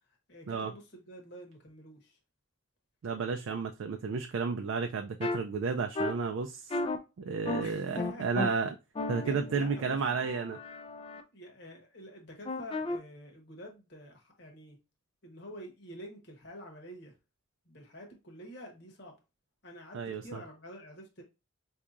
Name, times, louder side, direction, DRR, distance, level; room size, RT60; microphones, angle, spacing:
voice 1, 0.1-2.2 7.4-8.3 9.2-10.0 11.3-14.8 15.2-17.2 17.6-19.2 19.6-21.2, equal, 55° left, 1.1 m, -48 dB
voice 2, 3.0-6.8 7.2-8.8 9.1-10.6 19.9-20.4, right 5 dB, 70° right, 0.4 m, -32 dB
sound 1, 5.2-5.4 6.0-6.1 6.7-7.0 7.5-7.6 8.0-8.5 9.0-11.2 12.5-13.0, left 2 dB, 25° left, 0.4 m, -34 dB
4.6 x 2.7 x 2.4 m
head